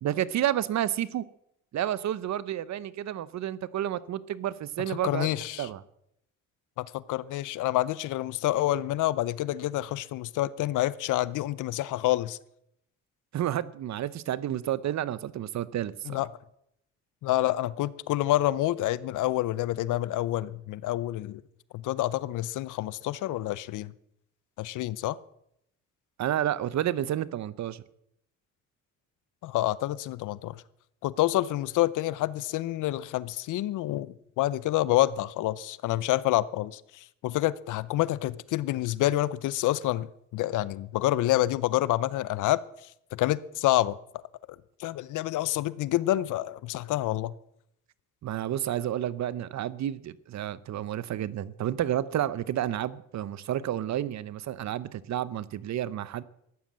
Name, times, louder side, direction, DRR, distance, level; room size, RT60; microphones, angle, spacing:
voice 1, 0.0-1.2 1.7-5.3 5.6-5.8 13.3-16.2 26.2-27.8 48.2-56.2, right 11 dB, 65° right, 0.8 m, -30 dB
voice 2, 5.0-5.7 6.8-12.4 16.1-16.3 17.2-21.4 21.7-23.9 24.6-25.2 29.4-30.6 31.0-42.6 43.1-44.0 44.8-47.3, left 15 dB, 85° left, 0.7 m, -28 dB
14.5 x 11.5 x 7.5 m
cardioid pair, 90°, 30 cm